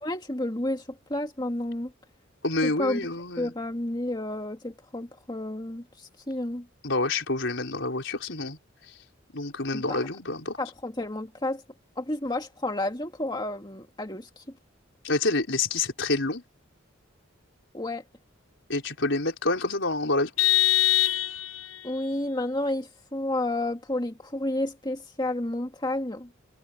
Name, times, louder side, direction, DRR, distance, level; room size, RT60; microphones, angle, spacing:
voice 1, 0.0-1.9 2.6-3.0 3.4-6.7 9.7-10.0 10.6-11.6 12.0-14.4 17.7-18.0 21.8-26.3, left 1 dB, 20° left, 2.1 m, -31 dB
voice 2, 2.4-3.5 6.8-8.6 9.3-10.6 15.0-16.4 18.7-20.3, left 2 dB, 65° left, 4.8 m, -27 dB
Vehicle horn car horn honking, 20.4-21.8, left 17 dB, 90° left, 0.9 m, -23 dB
head